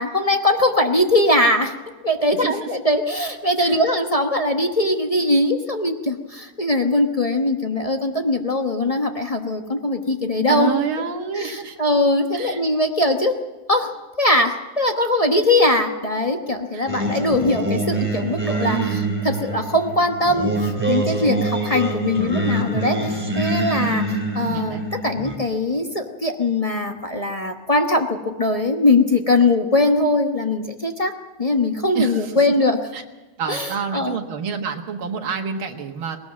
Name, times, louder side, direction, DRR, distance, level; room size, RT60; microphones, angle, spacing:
voice 1, 0.0-1.8 2.0-10.7 11.4-13.3 13.7-13.9 14.2-31.1 31.4-32.9 33.5-34.2, left 2 dB, 25° left, 4 dB, 0.8 m, -21 dB
voice 2, 2.4-2.7 3.6-3.8 10.5-11.8 12.3-12.6 16.7-16.9 18.7-19.1 23.8-24.0 24.4-24.9 31.9-32.3 32.9-33.0 33.4-36.2, right 7 dB, 85° right, 3 dB, 2.4 m, -28 dB
Singing, 16.9-25.4, right 2 dB, 5° right, 2.8 m, -25 dB
20.0 x 18.0 x 7.5 m, 1.2 s
omnidirectional pair, 2.2 m